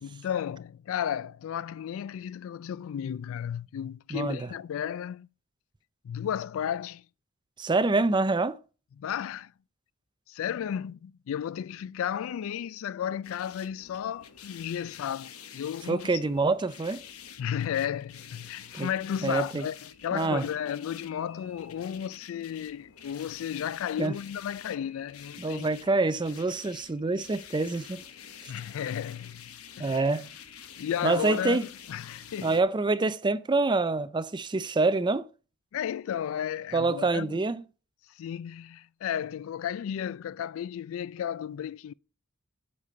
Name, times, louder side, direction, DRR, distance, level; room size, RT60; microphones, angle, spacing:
voice 1, 0.0-5.3 6.0-7.0 9.0-9.5 10.3-16.2 17.4-25.7 28.5-29.5 29.8-30.1 30.8-32.6 35.7-37.4 38.1-41.9, left 9 dB, 65° left, 0.3 m, -33 dB
voice 2, 4.1-4.5 7.6-8.6 15.9-17.0 18.7-18.9 19.2-19.7 20.1-20.5 24.0-24.1 25.4-28.0 29.8-30.3 31.0-31.6 32.4-35.3 36.7-37.6, right 3 dB, 20° right, 0.5 m, -26 dB
sound 1, 13.2-32.6, left 8 dB, 85° left, 1.0 m, -48 dB
8.5 x 6.8 x 4.3 m
head